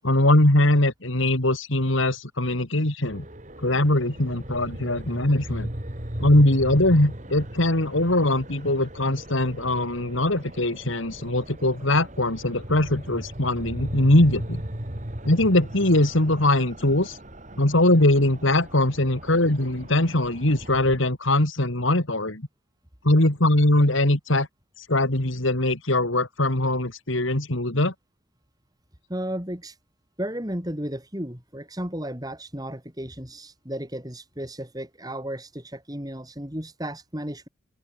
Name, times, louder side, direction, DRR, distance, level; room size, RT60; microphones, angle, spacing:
voice 1, 0.0-3.2 3.6-5.7 6.2-14.6 15.2-17.2 17.6-22.5 23.0-24.5 24.8-27.9, left 1 dB, 70° left, 3.1 m, -21 dB
sound 1, 3.0-21.0, right 1 dB, 35° right, 3.0 m, -38 dB
voice 2, 29.1-29.8 30.2-37.5, right 1 dB, 20° right, 4.6 m, -34 dB
open air
head